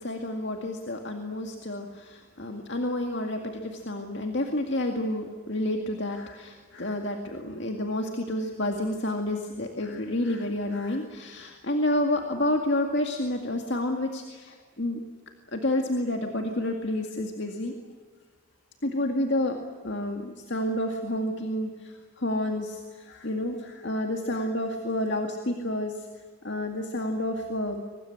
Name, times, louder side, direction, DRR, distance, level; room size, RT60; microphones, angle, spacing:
voice 1, 0.0-15.0 15.5-17.7 18.8-19.6 19.8-26.1 26.4-27.8, left 1 dB, 55° left, 3 dB, 2.1 m, -29 dB
24.5 x 20.0 x 9.9 m, 1.5 s
head